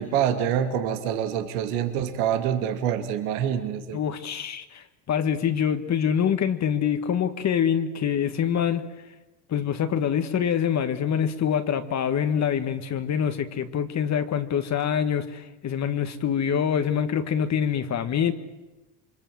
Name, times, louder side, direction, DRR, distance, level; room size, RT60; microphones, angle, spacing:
voice 1, 0.0-4.0, right 9 dB, 80° right, 2.5 m, -26 dB
voice 2, 3.9-8.9 9.5-18.3, left 8 dB, 35° left, 1.7 m, -25 dB
27.5 x 23.5 x 7.8 m
supercardioid pair, 110°, 44 cm